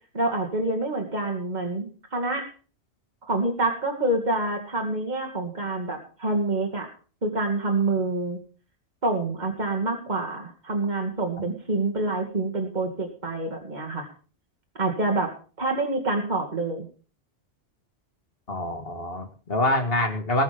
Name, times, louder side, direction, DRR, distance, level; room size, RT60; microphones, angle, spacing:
voice 1, 0.1-2.5 3.3-6.9 7.2-8.4 9.0-14.1 14.8-15.3 15.6-16.9, right 2 dB, 40° right, 2 dB, 2.5 m, -27 dB
voice 2, 18.5-20.4, left 1 dB, 55° left, 5 dB, 2.1 m, -25 dB
19.5 x 7.2 x 5.2 m, 0.39 s
omnidirectional pair, 1.2 m